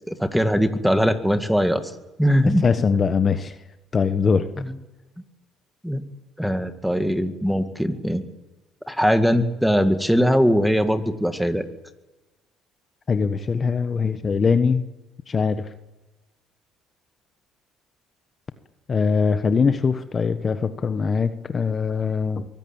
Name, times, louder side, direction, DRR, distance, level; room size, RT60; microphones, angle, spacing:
voice 1, 0.1-1.9 2.2-2.6 4.6-4.8 5.8-6.0 6.4-8.2 8.9-11.7, equal, ahead, 8 dB, 2.0 m, -21 dB
voice 2, 2.6-3.6 3.9-4.5 13.1-14.9 15.3-15.7 18.9-22.5, left 5 dB, 30° left, 10 dB, 1.2 m, -22 dB
23.5 x 16.0 x 9.0 m, 1.1 s
cardioid pair, 105°, 0 cm